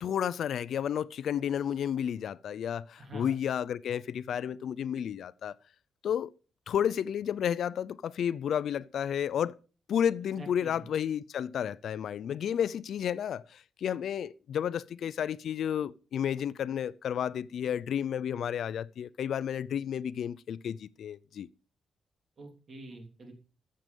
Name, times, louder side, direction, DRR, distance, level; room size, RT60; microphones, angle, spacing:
voice 1, 0.0-5.6 6.0-6.3 6.7-9.5 9.9-21.5, left 9 dB, 65° left, 0.4 m, -32 dB
voice 2, 3.0-3.4 10.4-10.8 22.4-23.3, right 1 dB, 40° right, 3.1 m, -46 dB
14.0 x 7.6 x 5.2 m
cardioid pair, 145°, 0 cm